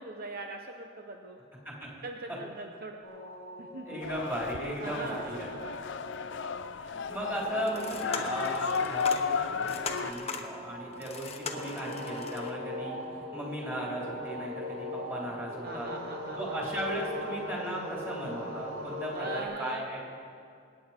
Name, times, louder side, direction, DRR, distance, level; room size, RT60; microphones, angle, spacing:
voice 1, 0.0-1.4 2.0-3.0 3.6-4.0 4.8-5.6 15.6-16.6 19.1-19.8, right 3 dB, 50° right, 3 dB, 0.8 m, -41 dB
sound 1, 3.0-19.4, left 1 dB, 75° right, 2.3 m, -41 dB
voice 2, 3.8-5.5 6.8-15.9 16.4-20.0, right 1 dB, 10° right, -4 dB, 3.9 m, -36 dB
sound 2, 4.0-10.1, left 6 dB, 65° left, 0.5 m, -34 dB
sound 3, 7.5-12.5, left 4 dB, 30° left, 1.1 m, -39 dB
26.5 x 9.5 x 4.5 m, 2.5 s
head